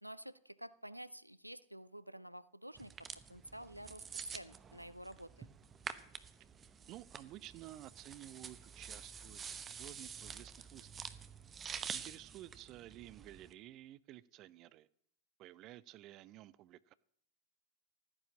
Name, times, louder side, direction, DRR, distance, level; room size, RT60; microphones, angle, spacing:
voice 1, 0.0-4.0 4.3-5.5, right 1 dB, 90° right, 0.5 m, -50 dB
sound 1, 2.8-13.5, right 7 dB, 20° right, 0.9 m, -48 dB
voice 2, 6.9-10.9 11.9-14.9 15.4-16.9, right 14 dB, 35° right, 0.5 m, -53 dB
13.5 x 9.7 x 7.2 m
figure-of-eight pair, 90°, 0 cm